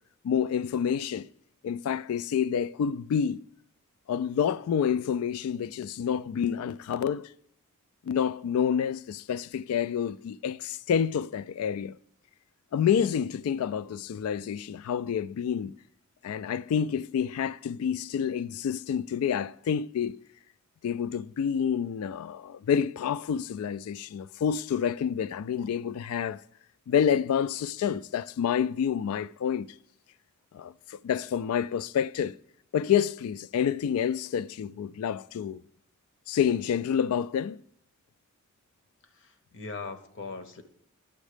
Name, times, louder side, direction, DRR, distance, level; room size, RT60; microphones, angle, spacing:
voice 1, 0.2-1.3 1.6-3.4 4.1-7.3 8.1-12.0 12.7-15.8 16.2-20.2 20.8-26.4 26.9-29.7 30.5-32.4 32.7-35.6 36.3-37.6, left 8 dB, 85° left, 0.3 m, -28 dB
voice 2, 39.0-40.6, left 4 dB, 60° left, 0.9 m, -40 dB
10.5 x 7.2 x 5.0 m
head